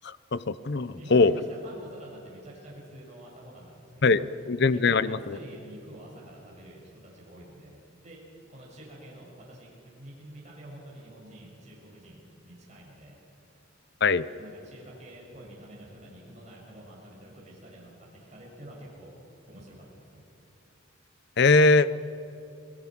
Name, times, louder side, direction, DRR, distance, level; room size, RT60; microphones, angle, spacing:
voice 1, 0.3-1.3 4.0-5.4 14.0-14.2 21.4-21.9, left 3 dB, 55° left, 16 dB, 0.7 m, -21 dB
voice 2, 0.8-4.3 4.7-7.8 8.0-8.2 8.5-13.2 14.4-20.2, right 1 dB, 35° right, -4 dB, 6.6 m, -48 dB
27.5 x 20.5 x 6.1 m, 2.8 s
head